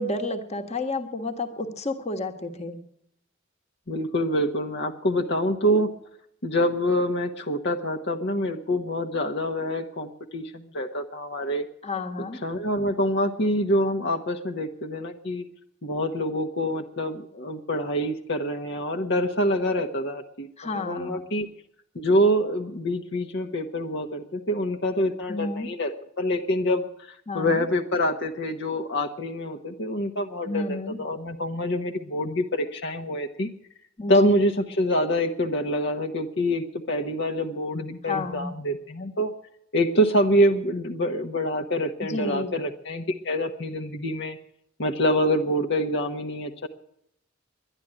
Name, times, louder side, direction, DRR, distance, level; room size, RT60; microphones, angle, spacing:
voice 1, 0.0-2.8 11.8-12.4 20.6-21.2 25.3-25.7 27.3-27.6 30.4-31.0 34.0-34.3 38.1-38.5 42.0-42.5, left 2 dB, 35° left, 5 dB, 1.5 m, -31 dB
voice 2, 3.9-5.9 6.4-11.6 12.3-15.4 15.8-21.5 21.9-25.9 26.2-26.9 27.3-33.5 34.1-39.3 39.7-44.4 44.8-46.7, equal, 60° left, 3 dB, 1.1 m, -26 dB
11.5 x 11.0 x 10.0 m, 0.72 s
head